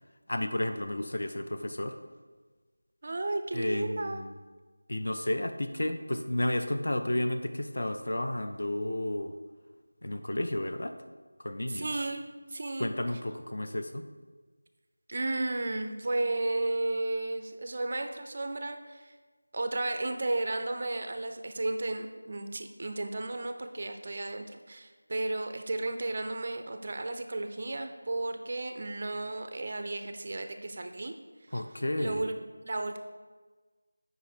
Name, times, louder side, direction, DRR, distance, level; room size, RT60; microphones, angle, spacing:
voice 1, 0.3-1.9 3.5-4.3 4.9-9.3 10.0-10.9 11.4-11.9 12.8-14.0 31.5-32.2, left 1 dB, 45° left, 7 dB, 0.6 m, -32 dB
voice 2, 3.0-4.2 11.6-12.9 15.1-19.1 19.5-31.1 31.5-32.4 32.6-33.0, right 2 dB, 30° right, 6 dB, 0.4 m, -33 dB
8.1 x 5.2 x 4.4 m, 1.4 s
figure-of-eight pair, 180°, 0 cm